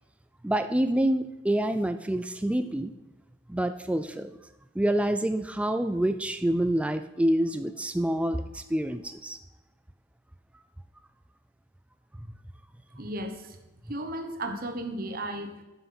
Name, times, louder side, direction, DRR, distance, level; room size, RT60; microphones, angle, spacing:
voice 1, 0.4-2.9 3.5-4.3 4.8-9.4, right 1 dB, 5° right, 9 dB, 0.3 m, -27 dB
voice 2, 12.9-13.6 13.9-15.6, right 1 dB, 45° right, 6 dB, 1.1 m, -35 dB
9.3 x 5.7 x 6.0 m, 1.1 s
head